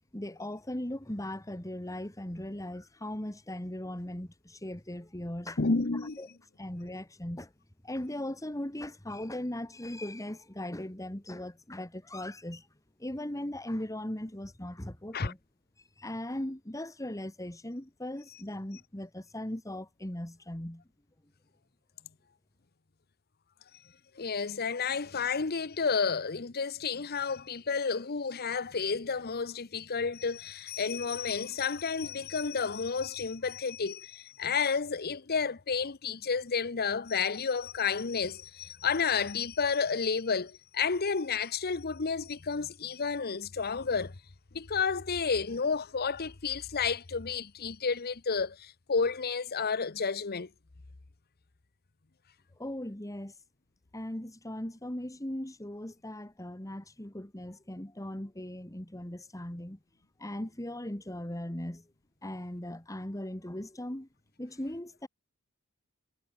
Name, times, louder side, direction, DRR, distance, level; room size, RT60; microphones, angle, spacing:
voice 1, 0.1-5.6 6.2-6.3 6.6-7.5 7.8-12.7 13.0-15.4 16.0-20.8 52.6-53.3 53.9-59.8 60.2-61.8 62.2-64.1 64.4-65.1, left 1 dB, 15° left, 1.8 m, -38 dB
voice 2, 5.6-6.2 15.1-15.3 24.2-44.1 44.5-50.5, left 5 dB, 45° left, 0.9 m, -31 dB
head